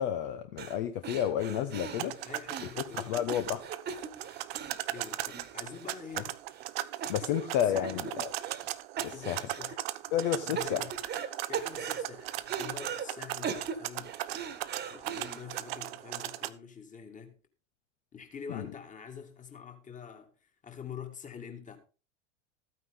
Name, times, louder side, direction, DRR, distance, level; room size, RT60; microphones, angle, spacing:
voice 1, 0.0-2.1 3.0-3.6 7.1-8.3 9.0-9.4 10.1-10.9 18.5-18.7, left 10 dB, 45° left, 1.0 m, -31 dB
sound 1, 0.6-0.8 1.0-6.2 6.5-6.7 7.0-7.6 7.8-8.7 9.0-9.7 10.2-11.3 11.5-13.1 13.4-15.6, right 7 dB, 25° right, 1.6 m, -39 dB
voice 2, 1.9-3.3 4.9-6.3 6.8-8.0 9.0-9.8 10.3-11.0 11.5-14.2 14.9-17.4 18.1-21.8, left 7 dB, 20° left, 2.2 m, -46 dB
sound 2, 1.9-16.5, right 15 dB, 50° right, 0.7 m, -38 dB
14.0 x 9.4 x 3.6 m
figure-of-eight pair, 85°, 39 cm